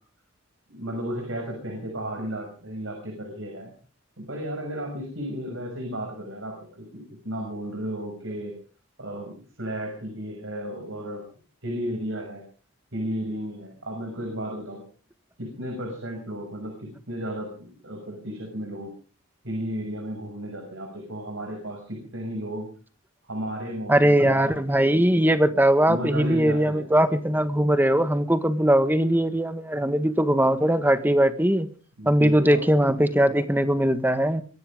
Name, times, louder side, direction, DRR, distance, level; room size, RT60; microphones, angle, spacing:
voice 1, 0.7-3.7 4.2-8.5 9.0-11.2 11.6-12.4 12.9-14.8 15.4-18.9 19.4-22.7 23.2-24.6 25.8-26.8 32.0-32.6, equal, 65° right, 2 dB, 6.4 m, -33 dB
voice 2, 23.9-31.7 32.0-34.4, right 1 dB, 10° right, 11 dB, 1.5 m, -20 dB
23.5 x 16.0 x 3.6 m, 0.39 s
head